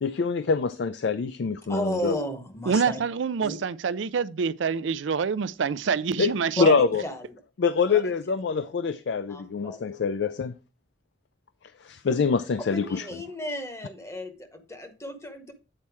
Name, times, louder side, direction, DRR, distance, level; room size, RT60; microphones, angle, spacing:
voice 1, 0.0-2.2 6.2-6.3 6.6-7.0 7.6-10.5 11.8-13.2, left 5 dB, 65° left, 0.4 m, -25 dB
voice 2, 1.7-3.0 3.4-3.6 6.6-7.3 7.9-8.1 9.3-9.8 12.7-15.5, left 1 dB, 15° left, 0.9 m, -33 dB
voice 3, 2.7-6.8, right 6 dB, 80° right, 0.4 m, -26 dB
8.7 x 4.3 x 4.7 m
head